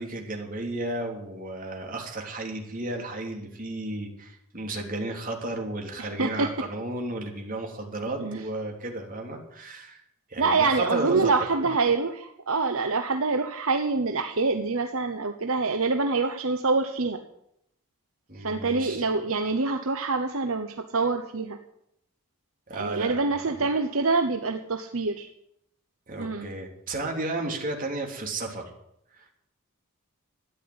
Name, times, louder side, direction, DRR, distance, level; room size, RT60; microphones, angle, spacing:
voice 1, 0.0-10.0 10.3-11.3 18.3-19.1 22.7-23.4 26.1-28.7 29.1-29.3, right 2 dB, 40° right, 2 dB, 3.1 m, -33 dB
voice 2, 6.0-6.5 8.2-8.4 10.4-17.2 18.4-21.6 22.7-25.3 26.2-26.5, right 3 dB, 65° right, 6 dB, 1.0 m, -26 dB
13.5 x 10.0 x 9.6 m, 0.76 s
head